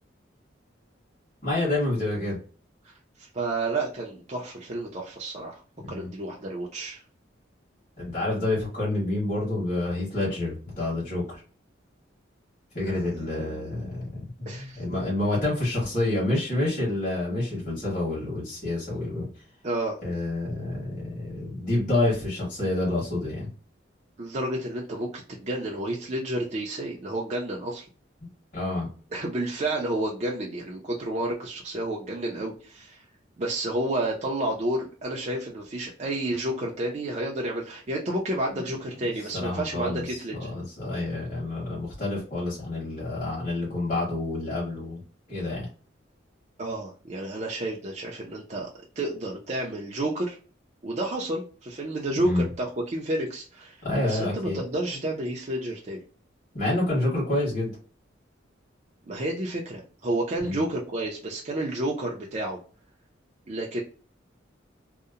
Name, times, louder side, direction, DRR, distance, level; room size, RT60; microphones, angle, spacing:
voice 1, 1.4-2.4 5.8-6.1 8.0-11.4 12.7-14.0 14.4-19.3 20.0-23.5 28.5-28.9 38.5-38.6 39.3-45.0 45.3-45.7 52.2-52.4 53.8-54.6 56.5-57.7 60.4-60.6, left 2 dB, 45° left, -6 dB, 1.3 m, -28 dB
voice 2, 3.2-5.6 5.9-7.0 12.8-13.8 14.5-14.8 19.6-20.0 24.2-27.8 29.1-33.0 33.4-40.5 46.6-48.7 49.0-50.4 50.8-53.8 54.0-56.0 59.1-62.6 63.5-63.8, right 1 dB, 35° right, -1 dB, 0.4 m, -30 dB
2.7 x 2.1 x 2.4 m, 0.39 s
head